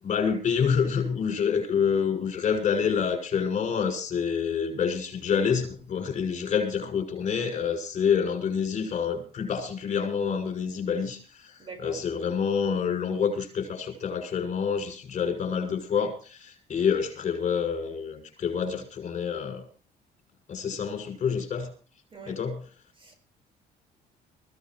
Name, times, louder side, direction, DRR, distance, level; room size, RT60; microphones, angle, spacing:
voice 1, 0.0-19.6 20.5-21.7 22.3-22.6, left 6 dB, 45° left, 6.8 m, -27 dB
voice 2, 11.6-12.0 22.1-22.4 23.0-23.2, right 4 dB, 30° right, 5.0 m, -43 dB
23.0 x 16.5 x 3.2 m
cardioid pair, 110°, 17 cm